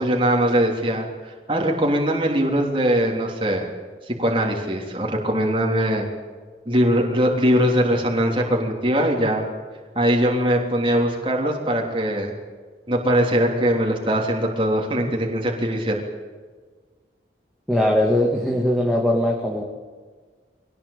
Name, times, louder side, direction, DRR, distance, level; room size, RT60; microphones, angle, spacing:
voice 1, 0.0-3.7 4.1-6.1 6.7-9.5 10.0-12.4 12.9-16.0, equal, 30° right, 1 dB, 3.4 m, -21 dB
voice 2, 17.7-19.6, left 1 dB, ahead, -2 dB, 2.3 m, -20 dB
22.5 x 18.0 x 8.6 m, 1.5 s
head